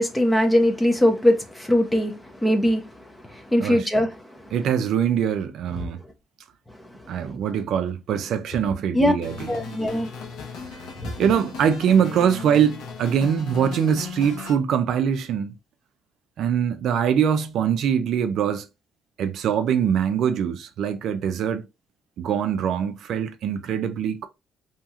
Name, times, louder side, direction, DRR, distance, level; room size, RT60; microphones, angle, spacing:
voice 1, 0.0-2.1 2.4-2.8 3.5-4.1 8.9-9.1 9.5-10.1 11.0-11.1, left 1 dB, 10° left, 0.7 m, -20 dB
voice 2, 3.6-4.0 4.5-6.0 7.1-9.6 10.7-10.8 11.2-15.6 16.4-18.7 19.2-21.7 22.2-24.3, right 8 dB, 65° right, 0.4 m, -23 dB
sound 1, 9.2-14.5, left 5 dB, 90° left, 1.0 m, -37 dB
2.8 x 2.8 x 2.4 m
cardioid pair, 135°, 0 cm